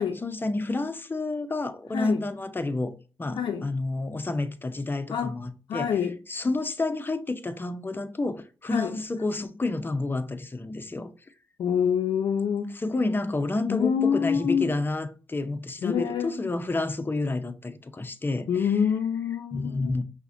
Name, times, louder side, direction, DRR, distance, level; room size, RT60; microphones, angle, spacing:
voice 1, 0.2-2.9 3.2-5.9 6.3-11.1 12.7-18.7 19.5-20.0, left 2 dB, 25° left, 0.5 m, -30 dB
voice 2, 1.9-2.2 3.4-3.7 5.1-5.3 5.7-6.2 8.7-8.9 11.6-12.7 13.7-14.7 15.8-16.3 18.5-19.9, left 7 dB, 75° left, 0.4 m, -26 dB
5.6 x 2.1 x 2.6 m
cardioid pair, 55°, 8 cm